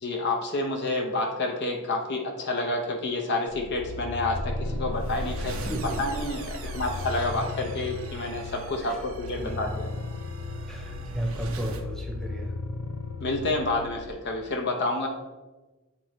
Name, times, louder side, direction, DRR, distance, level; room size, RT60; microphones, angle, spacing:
voice 1, 0.0-5.6 6.0-9.9 13.2-15.1, left 2 dB, 55° left, 2 dB, 0.7 m, -29 dB
sound 1, 3.5-14.1, left 3 dB, 85° left, 0.5 m, -37 dB
sound 2, 4.3-7.4, equal, 25° left, 0.4 m, -36 dB
sound 3, 4.5-11.9, right 2 dB, 70° right, 0.6 m, -40 dB
voice 2, 5.4-6.1 6.6-6.8 8.8-9.0 9.4-9.6 10.7-12.6, right 1 dB, ahead, -1 dB, 0.9 m, -35 dB
8.3 x 3.8 x 3.1 m, 1.2 s
head